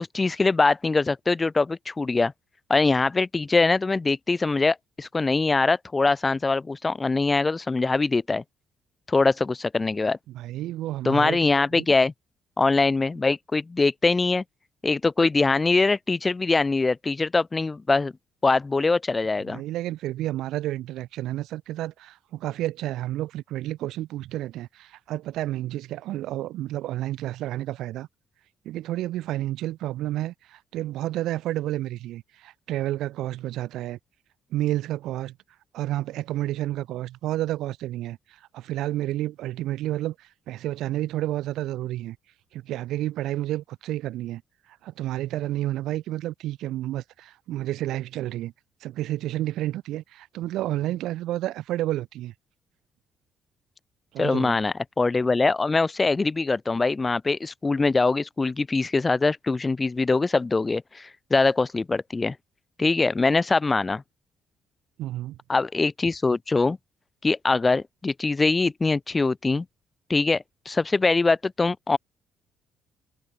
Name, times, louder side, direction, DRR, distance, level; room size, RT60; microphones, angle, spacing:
voice 1, 0.0-2.3 2.7-8.4 9.1-10.2 11.0-12.1 12.6-14.4 14.8-18.1 18.4-19.6 54.2-62.3 62.8-64.0 65.5-66.8 67.2-69.6 70.1-72.0, left 3 dB, 25° left, 6.5 m, -23 dB
voice 2, 10.3-11.9 19.5-28.1 28.7-34.0 34.5-35.3 35.7-42.2 42.5-44.4 44.7-48.5 48.8-52.3 54.1-54.6 65.0-65.4, right 14 dB, 65° right, 5.4 m, -30 dB
hypercardioid pair, 45°, 0 cm